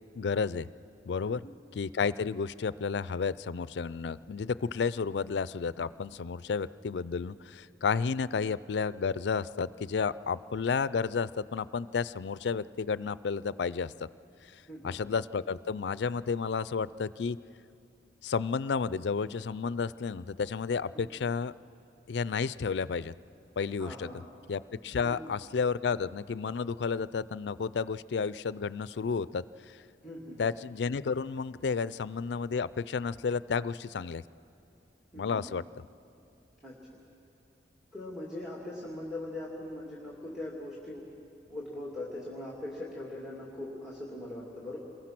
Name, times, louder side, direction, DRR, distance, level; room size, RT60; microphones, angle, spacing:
voice 1, 0.1-0.7 1.1-1.4 1.7-13.9 14.8-17.4 18.2-21.5 22.1-23.1 23.6-24.1 24.5-29.4 30.4-34.2 35.2-35.6, left 5 dB, 70° left, 17 dB, 0.4 m, -31 dB
voice 2, 1.2-1.6 14.7-15.0 20.9-21.1 23.8-24.2 25.0-25.3 30.0-30.4 35.1-35.5 36.6-36.7 37.9-41.1 41.5-44.8, left 1 dB, 5° right, -4 dB, 2.5 m, -41 dB
28.0 x 22.0 x 6.0 m, 2.7 s
head